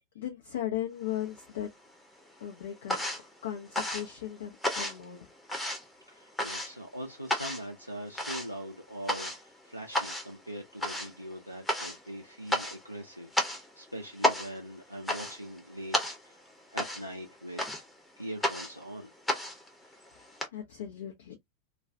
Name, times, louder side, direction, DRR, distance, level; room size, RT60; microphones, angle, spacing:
voice 1, 0.0-1.7 2.4-3.0 3.4-5.3 20.2-21.4, left 11 dB, 60° left, 0.5 m, -37 dB
sound 1, 1.1-1.9 2.2-20.5, left 1 dB, 5° left, 0.7 m, -33 dB
voice 2, 6.1-16.4 16.7-17.6 18.2-19.1 19.8-20.0, right 1 dB, 90° right, 0.4 m, -42 dB
2.3 x 2.3 x 2.5 m
figure-of-eight pair, 90°, 0 cm